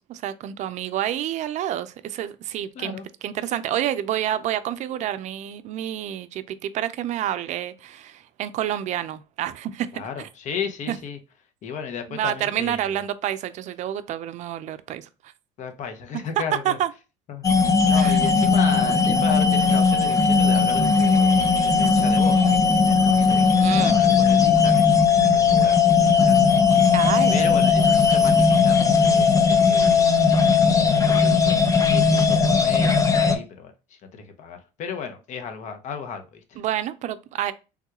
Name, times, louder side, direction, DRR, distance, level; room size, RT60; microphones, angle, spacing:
voice 1, 0.0-3.0 3.2-10.3 10.9-11.0 12.1-15.1 16.1-16.2 16.6-16.9 18.0-18.2 23.6-24.0 26.9-27.5 36.6-37.5, right 11 dB, 55° right, 0.4 m, -28 dB
voice 2, 2.7-3.1 9.9-11.2 11.6-13.0 15.6-16.8 17.3-22.6 22.9-26.6 27.3-30.0 30.6-36.6, left 6 dB, 55° left, 0.8 m, -35 dB
sound 1, 17.4-33.4, left 5 dB, 25° left, 0.6 m, -18 dB
3.5 x 2.3 x 2.8 m
supercardioid pair, 85°, 15 cm